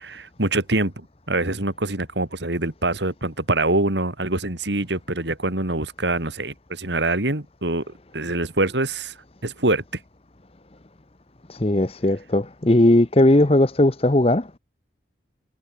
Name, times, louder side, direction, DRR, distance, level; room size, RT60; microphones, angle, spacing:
voice 1, 0.0-7.8 8.1-9.1 9.4-10.0, right 2 dB, 75° right, 3.4 m, -24 dB
voice 2, 11.5-14.5, left 1 dB, 30° left, 0.9 m, -18 dB
head